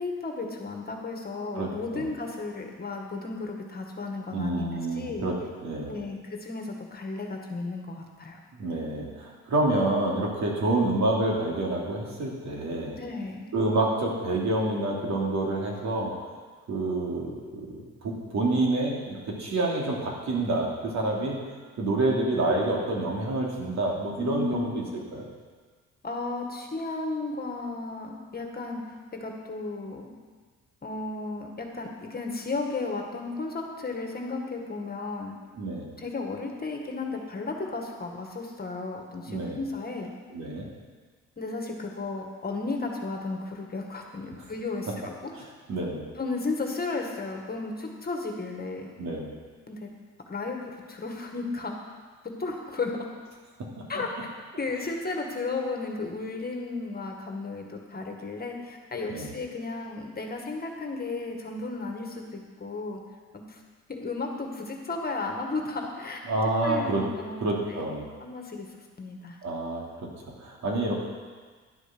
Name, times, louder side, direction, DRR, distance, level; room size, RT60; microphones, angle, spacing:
voice 1, 0.0-5.3 5.9-8.4 12.9-13.5 24.2-24.8 26.0-30.1 30.8-35.4 36.0-40.1 41.4-45.3 46.2-48.9 49.7-49.9 50.3-51.7 52.2-53.1 53.9-54.3 54.6-63.0 63.3-63.6 63.9-66.2 66.6-67.9 68.2-68.7 69.0-69.4, left 3 dB, 30° left, 2 dB, 1.8 m, -34 dB
voice 2, 1.6-2.1 4.3-5.3 5.6-6.0 8.5-12.9 13.5-16.1 16.7-21.4 21.8-24.8 25.1-25.2 35.6-35.9 39.3-39.6 40.3-40.7 44.3-44.4 45.3-45.4 45.7-46.0 49.0-49.3 53.6-53.7 59.1-59.3 66.3-67.0 67.4-68.0 69.4-70.1 70.4-71.0, right 2 dB, 65° right, -2 dB, 2.9 m, -28 dB
11.5 x 8.3 x 6.1 m, 1.5 s
cardioid pair, 90°, 30 cm